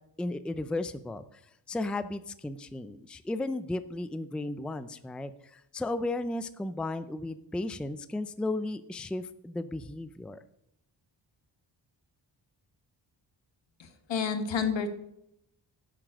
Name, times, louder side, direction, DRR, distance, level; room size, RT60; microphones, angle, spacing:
voice 1, 0.2-1.2 1.7-10.4, left 2 dB, ahead, 12 dB, 0.4 m, -34 dB
voice 2, 13.8-14.9, left 6 dB, 80° left, 8 dB, 1.7 m, -30 dB
12.0 x 7.5 x 6.2 m, 0.79 s
wide cardioid pair, 175°, 43 cm